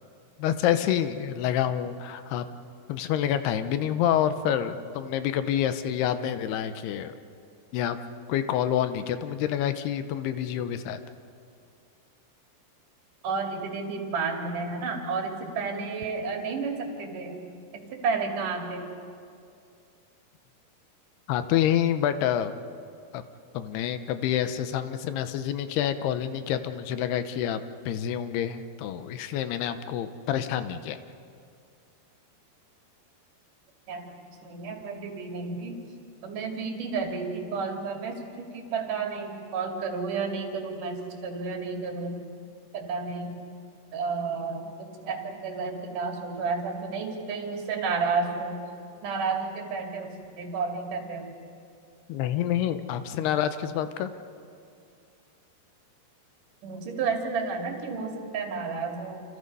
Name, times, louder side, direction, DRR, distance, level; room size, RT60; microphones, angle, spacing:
voice 1, 0.4-2.5 2.9-7.1 7.7-8.0 8.3-11.0 21.3-22.5 23.1-23.2 23.5-27.6 27.9-31.0 52.1-54.1, left 10 dB, 75° left, 10 dB, 2.8 m, -27 dB
voice 2, 13.2-17.4 17.7-18.9 33.9-34.1 34.4-35.8 36.2-42.2 42.7-43.4 43.9-48.6 49.0-51.3 56.6-59.2, right 4 dB, 55° right, 2 dB, 3.9 m, -31 dB
29.5 x 26.5 x 5.5 m, 2.4 s
omnidirectional pair, 4.9 m